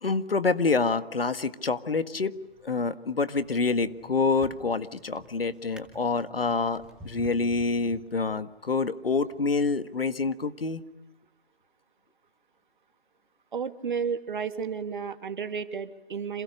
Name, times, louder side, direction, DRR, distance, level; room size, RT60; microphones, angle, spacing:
voice 1, 0.0-2.4 2.6-10.8, left 4 dB, 70° left, 11 dB, 1.9 m, -27 dB
Drawer open or close, 2.4-2.8 3.3-8.5 9.2-9.4, right 2 dB, ahead, 2.2 m, -50 dB
voice 2, 13.5-16.4, right 6 dB, 55° right, 9 dB, 2.2 m, -32 dB
30.0 x 27.0 x 6.7 m, 0.96 s
figure-of-eight pair, 145°, 30 cm